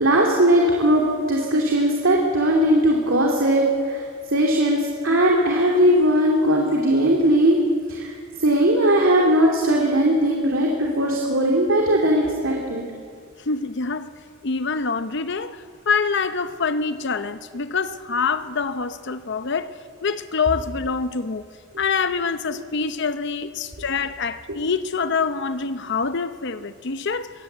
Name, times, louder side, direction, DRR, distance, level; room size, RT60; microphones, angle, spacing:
voice 1, 0.0-4.0 4.3-7.6 7.9-12.8 22.5-22.6, right 1 dB, 75° right, 2.7 m, -19 dB
voice 2, 13.5-14.1 14.4-19.7 20.0-21.4 21.8-27.3, left 5 dB, 55° left, 0.8 m, -25 dB
23.0 x 17.5 x 8.1 m
head